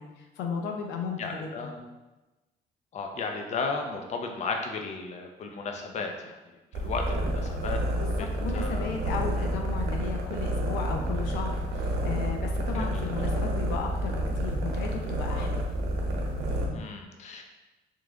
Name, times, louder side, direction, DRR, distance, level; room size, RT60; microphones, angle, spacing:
voice 1, 0.0-1.7 7.9-15.6, left 5 dB, 90° left, 2 dB, 0.6 m, -35 dB
voice 2, 1.2-1.8 2.9-6.4 6.8-7.8 8.2-8.3 8.5-8.9 12.7-13.1 16.7-17.4, left 4 dB, 40° left, 3 dB, 0.6 m, -34 dB
sound 1, 6.7-16.7, right 1 dB, 90° right, 0.8 m, -29 dB
sound 2, 7.1-16.8, left 1 dB, 15° left, 1.4 m, -42 dB
3.7 x 3.2 x 3.5 m, 1.1 s
cardioid pair, 110°, 17 cm